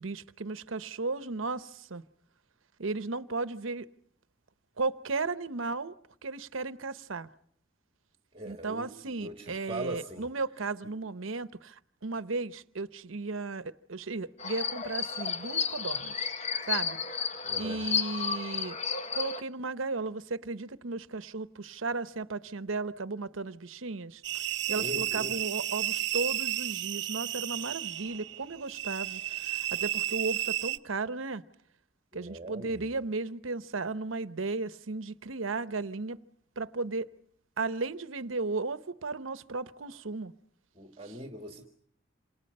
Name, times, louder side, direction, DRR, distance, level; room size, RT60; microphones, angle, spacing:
voice 1, 0.0-2.0 2.8-3.9 4.8-5.9 6.2-7.3 8.4-16.3 16.7-17.0 17.6-18.8 19.1-31.4 32.1-36.2 36.6-37.1 37.6-40.3 41.0-41.2, right 3 dB, 90° right, 1.0 m, -35 dB
voice 2, 8.3-10.3 17.4-17.8 24.7-25.5 32.1-32.8 40.8-41.7, right 1 dB, 25° right, 1.8 m, -41 dB
sound 1, 14.4-19.4, left 6 dB, 35° left, 1.1 m, -32 dB
sound 2, 24.2-30.8, right 13 dB, 60° right, 0.9 m, -33 dB
27.5 x 27.5 x 5.5 m
head